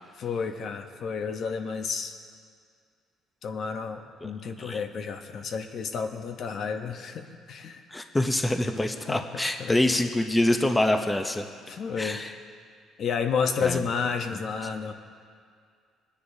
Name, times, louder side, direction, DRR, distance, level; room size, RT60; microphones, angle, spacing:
voice 1, 0.2-2.2 3.4-7.8 9.1-9.2 9.6-9.8 11.7-12.3 13.0-14.9, left 5 dB, 55° left, 6 dB, 0.8 m, -31 dB
voice 2, 7.9-11.4 12.0-12.3 13.6-13.8, left 1 dB, 10° left, 5 dB, 0.7 m, -25 dB
22.5 x 9.9 x 2.7 m, 2.1 s
cardioid pair, 120°, 0 cm